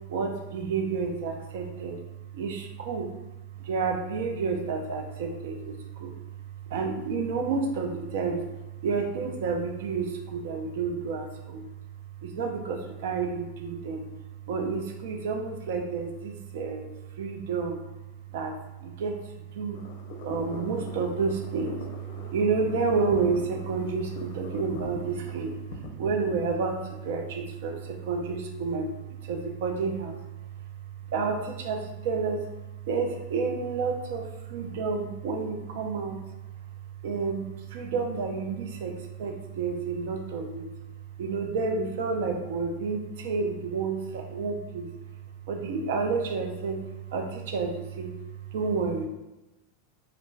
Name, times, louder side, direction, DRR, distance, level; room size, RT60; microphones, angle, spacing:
voice 1, 0.1-2.0 2.3-3.1 3.6-6.1 6.7-8.5 8.8-11.7 12.2-14.1 14.5-16.9 17.1-17.8 18.3-19.8 20.2-30.6 31.1-32.5 32.8-36.2 37.0-40.7 41.2-44.9 45.5-48.2 48.5-49.1, right 4 dB, 70° right, 3 dB, 0.4 m, -30 dB
sound 1, 19.7-25.9, left 3 dB, 55° left, 0.4 m, -43 dB
2.5 x 2.1 x 3.1 m, 1.0 s
supercardioid pair, 160°, 0 cm